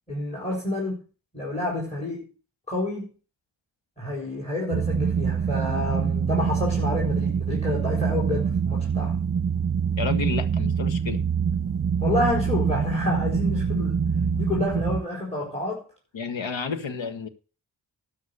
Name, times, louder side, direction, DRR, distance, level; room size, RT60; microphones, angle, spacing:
voice 1, 0.1-1.0 1.3-2.3 2.7-3.1 4.0-9.2 12.0-14.0 14.3-15.8, left 2 dB, 15° left, 4.2 m, -29 dB
sound 1, 4.7-15.0, right 7 dB, 30° right, 0.9 m, -25 dB
voice 2, 10.0-11.3 16.1-17.3, left 5 dB, 85° left, 1.5 m, -31 dB
12.0 x 5.8 x 6.8 m
wide cardioid pair, 80°, 44 cm